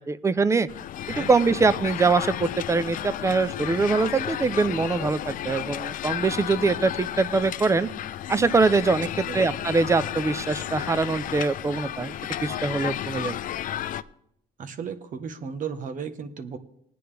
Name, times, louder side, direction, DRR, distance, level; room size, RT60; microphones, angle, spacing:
voice 1, 0.1-0.7 1.1-7.9 8.3-9.1 9.3-12.1 12.4-13.4, right 4 dB, 15° right, 16 dB, 0.5 m, -23 dB
sound 1, 0.7-14.0, left 11 dB, 55° left, 0.5 m, -33 dB
voice 2, 14.6-16.6, right 6 dB, 50° right, 8 dB, 1.2 m, -35 dB
19.5 x 9.4 x 3.4 m, 0.73 s
cardioid pair, 110°, 17 cm